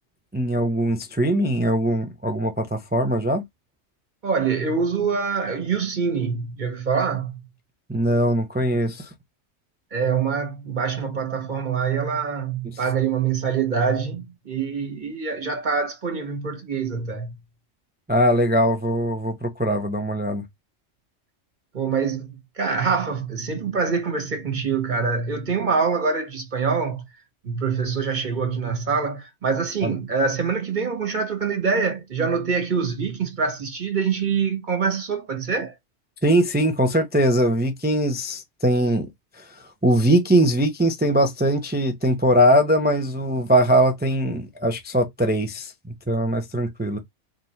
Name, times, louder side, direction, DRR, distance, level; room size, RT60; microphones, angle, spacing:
voice 1, 0.3-3.4 7.9-9.1 18.1-20.4 29.8-29.9 36.2-39.1 39.4-39.5 39.8-45.7 46.1-47.0, right 1 dB, 10° right, 0.5 m, -21 dB
voice 2, 4.2-7.3 9.9-17.3 21.7-27.0 27.4-35.7, right 5 dB, 40° right, 1.5 m, -25 dB
3.7 x 2.6 x 4.4 m
omnidirectional pair, 1.3 m